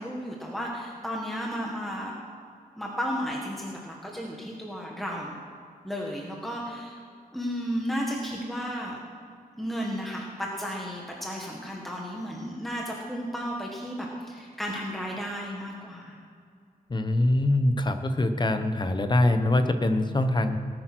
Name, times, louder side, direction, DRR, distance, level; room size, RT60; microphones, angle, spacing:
voice 1, 0.0-2.1 2.8-5.4 5.8-7.0 7.3-9.0 9.6-16.2, equal, ahead, -2 dB, 1.6 m, -33 dB
voice 2, 16.9-20.6, left 1 dB, 30° left, 8 dB, 0.9 m, -23 dB
19.0 x 8.8 x 6.1 m, 2.3 s
wide cardioid pair, 170°, 16 cm